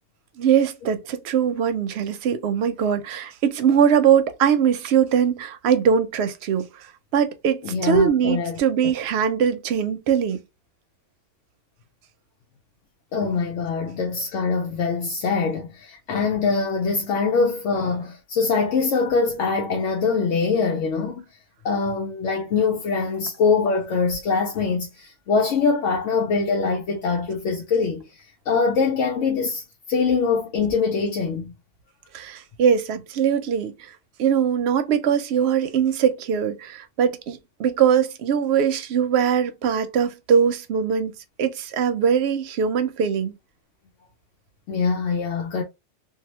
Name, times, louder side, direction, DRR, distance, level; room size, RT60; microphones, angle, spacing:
voice 1, 0.4-10.4 32.1-33.9 34.2-43.3, right 8 dB, 70° right, 0.8 m, -21 dB
voice 2, 7.6-8.9 13.1-21.2 21.6-28.0 28.5-31.5 44.7-45.6, left 4 dB, 90° left, 1.0 m, -23 dB
2.8 x 2.3 x 3.0 m
omnidirectional pair, 1.2 m